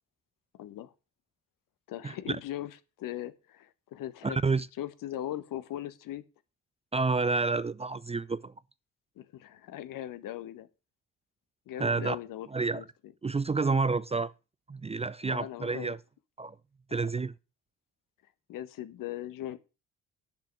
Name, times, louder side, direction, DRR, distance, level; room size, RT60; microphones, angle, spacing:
voice 1, 0.5-0.9 1.9-4.4 4.8-6.2 9.2-10.7 11.7-12.5 12.7-13.1 15.2-16.0 18.5-19.6, left 13 dB, 60° left, 1.4 m, -39 dB
voice 2, 4.2-4.7 6.9-8.5 11.8-12.2 12.5-12.8 13.2-14.3 14.7-16.0 16.4-16.6 16.9-17.3, right 4 dB, 15° right, 0.6 m, -29 dB
10.5 x 5.9 x 7.8 m
hypercardioid pair, 50°, 37 cm